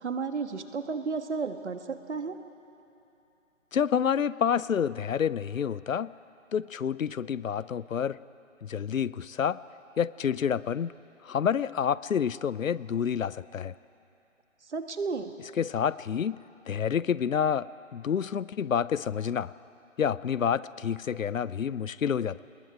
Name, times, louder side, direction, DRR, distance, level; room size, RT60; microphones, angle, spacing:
voice 1, 0.0-2.3 14.7-15.3, right 4 dB, 60° right, 8 dB, 1.5 m, -33 dB
voice 2, 3.7-6.1 6.5-8.2 8.6-9.6 10.0-10.9 11.2-13.7 15.6-16.4 16.7-19.5 20.0-22.4, left 8 dB, 85° left, 19 dB, 0.6 m, -28 dB
27.5 x 20.5 x 4.8 m, 2.8 s
figure-of-eight pair, 155°, 39 cm